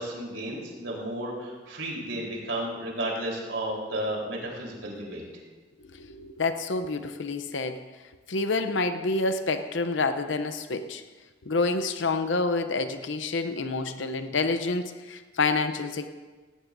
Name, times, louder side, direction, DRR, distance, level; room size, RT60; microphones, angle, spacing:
voice 1, 0.0-5.2, right 1 dB, 75° right, -2 dB, 4.0 m, -33 dB
voice 2, 6.0-7.8 8.3-11.0 11.5-16.1, left 3 dB, 80° left, 8 dB, 0.7 m, -28 dB
17.0 x 17.0 x 2.7 m, 1.3 s
head